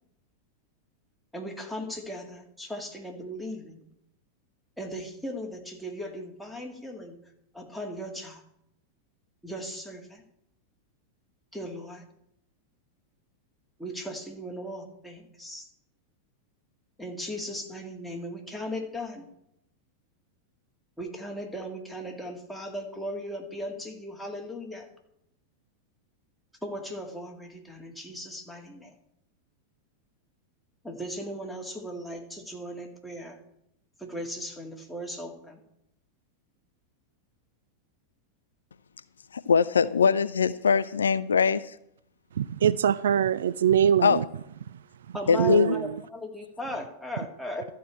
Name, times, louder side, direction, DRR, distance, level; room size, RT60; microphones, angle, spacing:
voice 1, 1.3-3.8 4.8-7.2 7.5-8.4 9.4-10.2 11.5-12.0 13.8-15.7 17.0-19.3 21.0-24.9 26.6-28.9 30.8-33.4 34.0-35.6 45.1-47.7, equal, ahead, 2.1 m, -37 dB
voice 2, 39.3-41.8 44.0-44.2 45.3-45.8, left 6 dB, 70° left, 0.3 m, -22 dB
voice 3, 42.4-44.2 45.4-45.9, right 9 dB, 65° right, 0.3 m, -23 dB
13.0 x 4.7 x 8.7 m
figure-of-eight pair, 90°, 0 cm